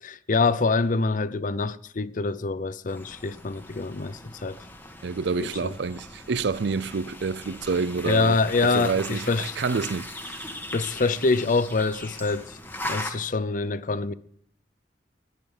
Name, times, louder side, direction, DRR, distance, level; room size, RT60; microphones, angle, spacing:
voice 1, 0.0-4.6 5.4-5.7 8.0-9.6 10.7-12.6 12.8-14.1, left 3 dB, 45° left, 0.6 m, -25 dB
sound 1, 2.9-13.1, left 1 dB, 10° left, 1.4 m, -39 dB
voice 2, 5.0-10.6, right 4 dB, 65° right, 0.5 m, -28 dB
12.5 x 10.0 x 7.2 m
head